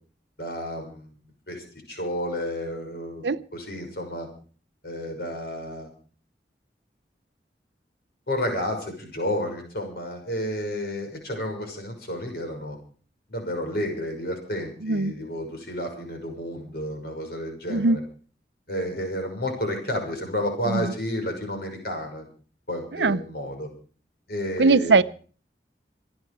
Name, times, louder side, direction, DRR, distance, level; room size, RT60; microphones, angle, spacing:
voice 1, 0.4-1.1 1.5-3.3 3.5-4.3 4.8-5.9 8.3-12.8 13.3-18.0 18.7-22.3 22.7-23.7 24.3-25.0, equal, 60° left, 4 dB, 6.1 m, -31 dB
voice 2, 14.8-15.1 17.7-18.0 20.7-20.9 22.9-23.2 24.6-25.0, right 3 dB, 80° right, 16 dB, 0.7 m, -20 dB
26.5 x 9.7 x 5.0 m, 0.41 s
head